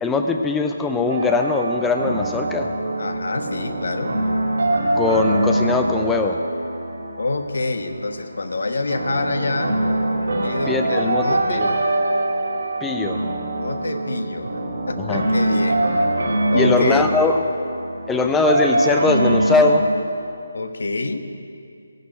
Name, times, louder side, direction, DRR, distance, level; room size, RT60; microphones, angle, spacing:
voice 1, 0.0-2.7 4.9-6.4 10.7-11.7 12.8-13.2 15.1-15.2 16.5-17.4 18.1-19.9, left 3 dB, 5° left, 5 dB, 0.5 m, -20 dB
sound 1, 1.1-20.0, right 1 dB, 75° right, 3.0 m, -23 dB
voice 2, 3.0-4.1 7.2-9.8 10.4-11.8 13.6-14.5 14.9-16.0 16.5-17.1 17.4-17.5 20.5-21.3, left 3 dB, 75° left, 8 dB, 1.2 m, -26 dB
15.0 x 6.7 x 9.6 m, 2.4 s
hypercardioid pair, 165°, 0 cm